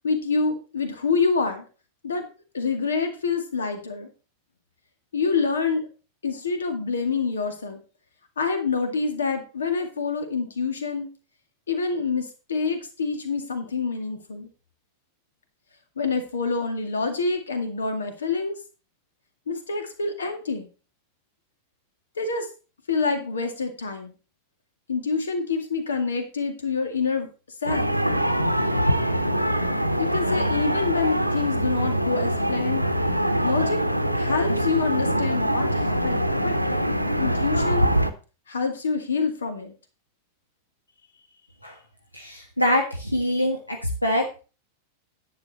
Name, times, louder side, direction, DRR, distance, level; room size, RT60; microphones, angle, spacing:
voice 1, 0.0-1.6 2.0-2.3 2.5-4.1 5.1-5.9 6.2-7.8 8.4-11.1 11.7-14.5 16.0-18.6 19.5-20.7 22.2-22.5 22.9-24.1 24.9-27.3 27.6-27.9 30.0-32.8 33.4-33.8 34.1-36.6 37.2-37.9 38.5-39.8, left 4 dB, 70° left, 7 dB, 2.1 m, -26 dB
sound 1, 27.6-38.1, equal, 90° right, 0.9 m, -23 dB
voice 2, 42.2-43.6 44.0-44.2, left 1 dB, 85° left, 1 dB, 1.6 m, -23 dB
10.5 x 8.6 x 4.1 m, 0.34 s
figure-of-eight pair, 90°, 0 cm